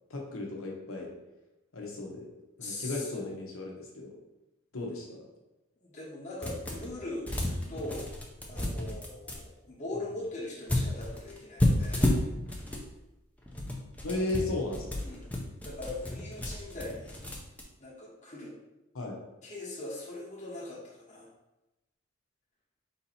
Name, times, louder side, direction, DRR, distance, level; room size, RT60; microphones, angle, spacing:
voice 1, 0.1-1.1 1.7-2.3 2.6-4.1 4.7-5.2 14.0-15.0 18.9-19.2, left 2 dB, 75° left, -1 dB, 1.0 m, -35 dB
voice 2, 2.6-3.3 5.8-8.1 8.5-12.1 14.1-15.3 15.6-17.2 17.8-18.5 19.4-21.3, left 2 dB, 35° left, -7 dB, 1.1 m, -41 dB
sound 1, 6.4-6.9 7.2-9.4 10.7-12.9 13.4-17.6, left 1 dB, 5° left, 0.5 m, -31 dB
4.1 x 2.8 x 4.2 m, 0.99 s
head